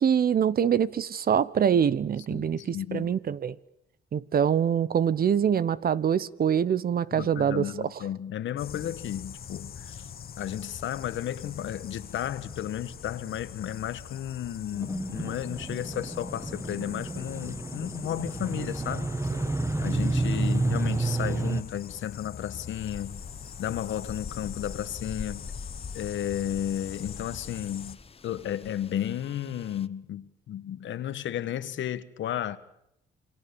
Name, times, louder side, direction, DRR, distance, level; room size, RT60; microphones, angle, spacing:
voice 1, 0.0-3.5 4.1-7.7, right 8 dB, 50° right, 1.0 m, -24 dB
voice 2, 2.3-3.1 7.1-10.0 10.4-19.1 19.8-23.2 23.6-25.5 25.9-28.0 28.2-32.6, left 11 dB, 70° left, 1.5 m, -33 dB
sound 1, 8.6-28.0, left 8 dB, 50° left, 1.5 m, -43 dB
sound 2, 14.8-21.6, right 2 dB, 15° right, 1.6 m, -30 dB
sound 3, 22.7-29.9, left 5 dB, 30° left, 1.0 m, -44 dB
28.5 x 23.5 x 7.0 m
cardioid pair, 90°, 20 cm